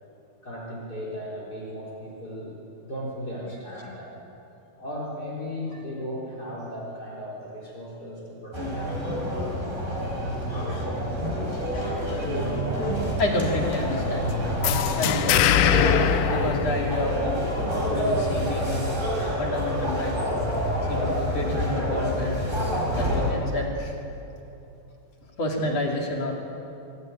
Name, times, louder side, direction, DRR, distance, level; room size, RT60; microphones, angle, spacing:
voice 1, 0.4-2.6 2.8-4.1 4.7-9.7 10.5-10.8 11.2-11.7 12.3-12.6, equal, 25° left, -4 dB, 4.1 m, -37 dB
sound 1, 8.5-23.3, equal, 15° right, 5.1 m, -27 dB
voice 2, 11.7-12.3 13.2-14.2 15.0-15.7 16.3-17.4 17.9-18.8 19.4-20.2 20.9-22.7 23.0-23.9 25.4-26.3, left 1 dB, 45° left, 0 dB, 3.6 m, -29 dB
sound 2, 14.6-17.4, left 11 dB, 75° left, 2.1 m, -23 dB
25.5 x 16.0 x 9.0 m, 2.8 s
omnidirectional pair, 4.1 m